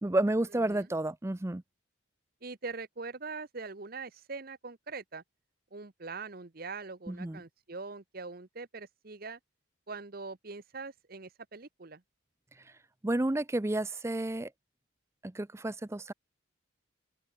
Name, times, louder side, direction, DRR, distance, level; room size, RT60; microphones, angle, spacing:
voice 1, 0.0-1.6 7.1-7.4 13.0-14.5 15.2-16.1, right 1 dB, 15° right, 0.5 m, -31 dB
voice 2, 2.4-5.2 5.7-9.4 9.9-12.0, right 4 dB, 50° right, 1.0 m, -42 dB
open air
head